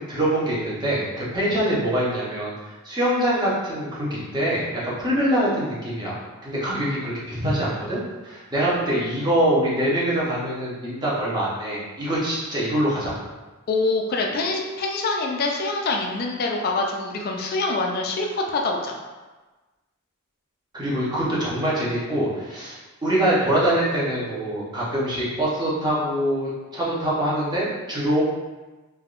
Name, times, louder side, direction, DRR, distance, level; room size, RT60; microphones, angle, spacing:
voice 1, 0.0-6.2 6.4-13.2 20.7-28.2, right 1 dB, 20° right, -7 dB, 0.7 m, -24 dB
voice 2, 13.7-18.9, left 3 dB, 45° left, 1 dB, 0.4 m, -25 dB
3.4 x 2.2 x 2.4 m, 1.2 s
head